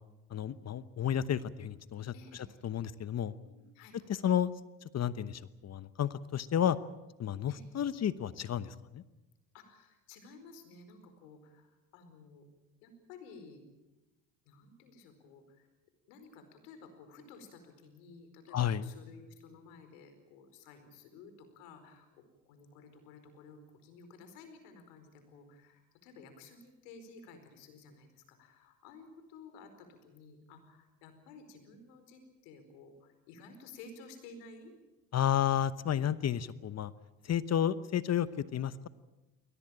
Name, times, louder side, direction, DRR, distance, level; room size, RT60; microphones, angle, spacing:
voice 1, 0.3-2.1 2.6-3.3 4.2-4.5 4.9-6.8 7.2-9.0 18.5-18.8 35.1-36.9 37.2-38.9, left 10 dB, 40° left, 15 dB, 1.0 m, -31 dB
voice 2, 2.1-2.4 3.4-4.0 7.5-7.6 9.5-12.5 12.8-13.6 14.4-15.7 16.1-34.7, left 4 dB, 85° left, 8 dB, 4.8 m, -54 dB
22.0 x 18.0 x 8.9 m, 1.1 s
supercardioid pair, 80°, 40 cm